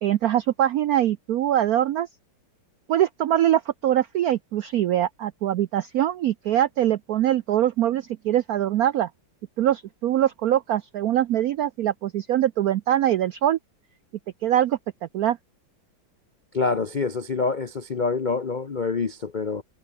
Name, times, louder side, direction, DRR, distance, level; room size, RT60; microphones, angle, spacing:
voice 1, 0.0-2.1 2.9-9.1 9.6-13.6 14.4-14.8 15.1-15.4, right 11 dB, 80° right, 0.8 m, -23 dB
voice 2, 16.5-19.6, left 4 dB, 70° left, 0.4 m, -26 dB
omnidirectional pair, 2.2 m